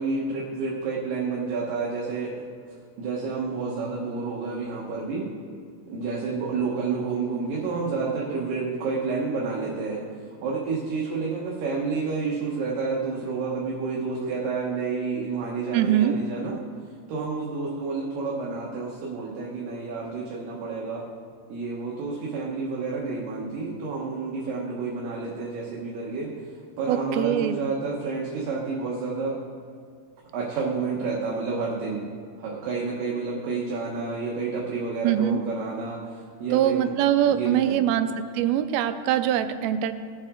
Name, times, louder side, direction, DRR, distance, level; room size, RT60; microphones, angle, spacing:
voice 1, 0.0-2.5 3.0-5.3 5.9-16.6 17.1-21.0 21.5-26.5 26.8-29.4 30.3-32.1 32.4-36.9 37.3-37.9, right 4 dB, 70° right, -4 dB, 2.7 m, -30 dB
voice 2, 15.7-16.1 26.9-27.6 35.0-35.4 36.5-38.1 38.3-39.9, right 11 dB, 85° right, 10 dB, 2.5 m, -23 dB
19.0 x 7.5 x 3.7 m, 2.1 s
omnidirectional pair, 4.3 m